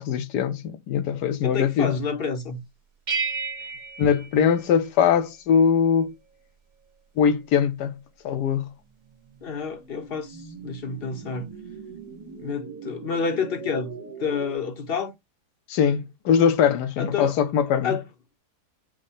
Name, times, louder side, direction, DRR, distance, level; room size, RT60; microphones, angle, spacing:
voice 1, 0.0-1.9 4.0-6.1 7.2-8.0 8.2-8.7 15.7-17.9, left 7 dB, 80° left, 1.2 m, -21 dB
voice 2, 1.4-2.6 9.4-11.5 12.4-15.1 17.0-17.4 17.8-18.0, left 5 dB, 50° left, 0.7 m, -29 dB
sound 1, 3.1-5.3, right 5 dB, 35° right, 0.8 m, -32 dB
sound 2, 9.0-14.6, right 5 dB, 80° right, 1.6 m, -41 dB
6.2 x 2.1 x 4.0 m
omnidirectional pair, 1.8 m